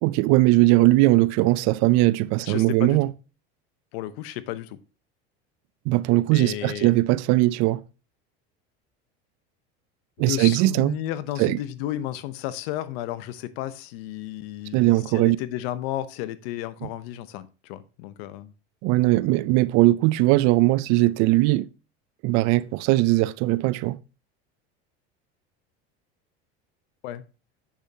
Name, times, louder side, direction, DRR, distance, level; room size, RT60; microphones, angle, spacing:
voice 1, 0.0-3.1 5.9-7.8 10.2-10.9 11.4-11.6 14.7-15.4 16.8-16.9 18.8-21.7 22.2-24.0, right 18 dB, 60° right, 0.5 m, -20 dB
voice 2, 2.4-3.0 3.9-4.8 6.3-6.9 10.3-18.5 27.0-27.2, left 13 dB, 75° left, 0.8 m, -33 dB
7.7 x 6.8 x 2.8 m
supercardioid pair, 110°, 31 cm